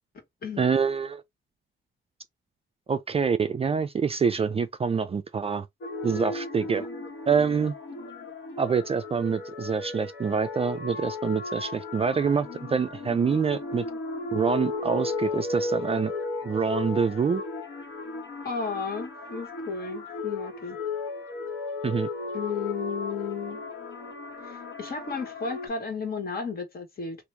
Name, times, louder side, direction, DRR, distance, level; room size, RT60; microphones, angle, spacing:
voice 1, 0.6-1.2 2.9-5.7 6.0-6.9 7.3-7.7 8.6-13.8 14.3-16.1 16.4-17.4 21.8-22.1, right 6 dB, 30° right, 0.4 m, -26 dB
sound 1, 5.8-25.7, left 3 dB, 65° left, 1.4 m, -35 dB
voice 2, 18.4-20.8 22.3-23.6 24.4-27.2, left 5 dB, 45° left, 1.5 m, -33 dB
3.0 x 2.5 x 3.3 m
cardioid pair, 105°, 21 cm